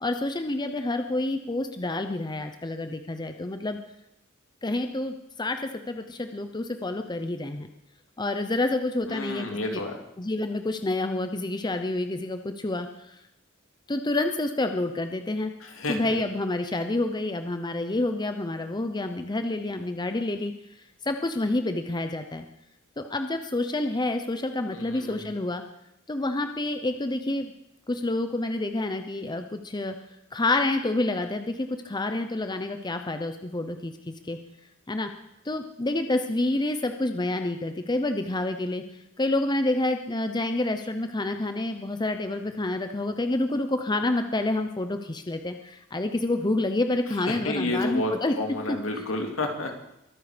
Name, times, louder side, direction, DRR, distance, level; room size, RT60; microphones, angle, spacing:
voice 1, 0.0-3.8 4.6-7.7 8.2-9.8 10.2-13.2 13.9-15.5 15.9-20.5 21.0-22.4 23.0-25.6 26.1-27.5 27.9-29.9 30.3-34.4 34.9-35.1 35.4-38.8 39.2-48.3 48.7-48.8, left 2 dB, 20° left, 7 dB, 0.7 m, -28 dB
voice 2, 9.1-10.0 15.6-16.2 24.7-25.3 47.3-49.7, left 2 dB, 75° left, 3 dB, 2.7 m, -30 dB
22.5 x 9.3 x 5.1 m, 0.85 s
head